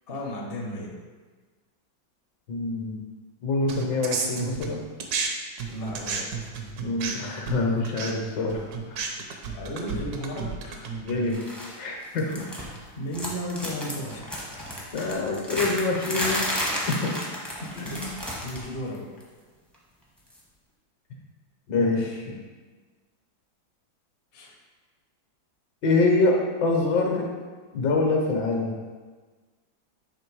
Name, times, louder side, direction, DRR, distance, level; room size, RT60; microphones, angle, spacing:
voice 1, 0.1-0.9 5.7-6.5 9.5-10.9 12.3-14.6 17.6-19.1 24.3-24.5, equal, 45° left, -1 dB, 0.8 m, -35 dB
voice 2, 2.5-3.1 3.4-4.8 6.8-9.1 11.0-11.4 11.8-12.3 14.9-16.4 16.7-17.1 17.8-18.0 21.7-22.4 25.8-27.3 27.7-28.8, left 3 dB, 65° left, 0 dB, 1.5 m, -25 dB
sound 1, 3.7-5.3 5.6-11.3, right 5 dB, 65° right, 1.0 m, -32 dB
sound 2, 11.3-11.8 12.0-12.8 13.1-18.7 18.9-19.2 20.3-20.4, equal, ahead, 0.5 m, -32 dB
7.1 x 3.2 x 4.6 m, 1.4 s
omnidirectional pair, 2.1 m